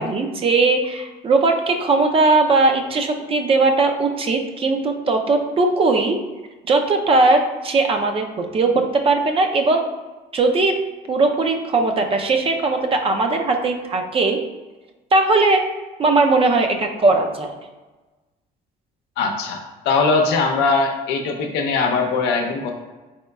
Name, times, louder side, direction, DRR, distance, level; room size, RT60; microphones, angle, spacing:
voice 1, 0.0-6.2 6.7-8.2 8.5-8.7 9.0-9.8 10.3-10.7 11.1-14.4 15.1-15.6 16.0-17.5, right 3 dB, 35° right, 4 dB, 0.5 m, -18 dB
voice 2, 19.2-19.6 19.8-22.7, left 4 dB, 80° left, 2 dB, 0.7 m, -20 dB
4.2 x 3.8 x 2.2 m, 1.2 s
cardioid pair, 110°, 17 cm